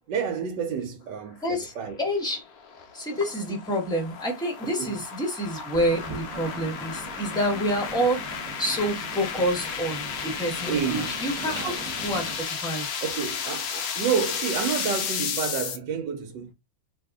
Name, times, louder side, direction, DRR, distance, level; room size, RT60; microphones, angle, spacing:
voice 1, 0.1-2.0 4.6-4.9 10.7-11.8 13.0-16.5, right 7 dB, 70° right, 1.2 m, -30 dB
voice 2, 1.4-1.7 2.0-2.4 2.9-8.2 8.6-13.0, equal, 5° left, 0.6 m, -28 dB
sound 1, 1.8-15.8, left 7 dB, 75° left, 0.8 m, -33 dB
sound 2, 5.7-12.4, right 2 dB, 30° right, 1.0 m, -40 dB
2.9 x 2.5 x 3.5 m
omnidirectional pair, 2.1 m